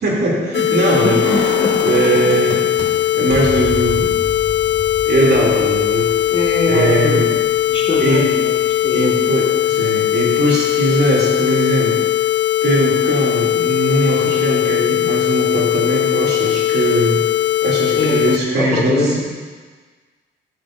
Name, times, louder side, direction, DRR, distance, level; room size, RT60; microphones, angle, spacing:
voice 1, 0.0-1.4 1.8-2.6 3.1-4.1 5.0-6.1 6.6-7.3 8.0-8.2 8.9-12.0 12.6-17.2 17.6-19.2, right 1 dB, 55° right, -4 dB, 2.7 m, -19 dB
sound 1, 0.5-18.4, left 13 dB, 70° left, 0.5 m, -18 dB
voice 2, 1.0-1.9 6.3-7.4 7.7-9.2 18.0-19.2, left 2 dB, 30° left, -3 dB, 1.8 m, -22 dB
sound 2, 1.2-2.8 3.3-9.1 9.5-9.6, right 2 dB, 35° right, 2.1 m, -30 dB
13.5 x 6.9 x 2.6 m, 1.5 s
cardioid pair, 90°, 20 cm